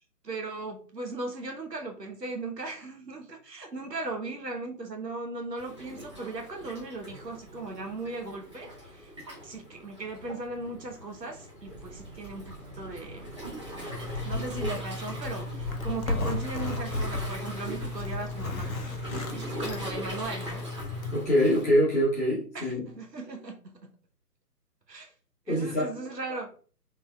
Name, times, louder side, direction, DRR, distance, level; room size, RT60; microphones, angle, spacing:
voice 1, 0.2-9.1 9.4-13.3 14.2-18.7 19.3-20.7 22.5-23.9 24.9-25.1 25.5-26.6, right 3 dB, 85° right, 3 dB, 0.9 m, -38 dB
Waves surf, 5.6-21.6, equal, 20° right, 0.7 m, -42 dB
sound 1, 11.6-20.3, right 2 dB, 40° right, 1.2 m, -47 dB
Zipper (clothing), 13.9-21.2, left 2 dB, 60° left, 0.8 m, -34 dB
voice 2, 21.1-22.8 25.5-25.9, equal, 10° left, -11 dB, 1.1 m, -24 dB
3.9 x 3.4 x 2.2 m, 0.40 s
figure-of-eight pair, 140°, 48 cm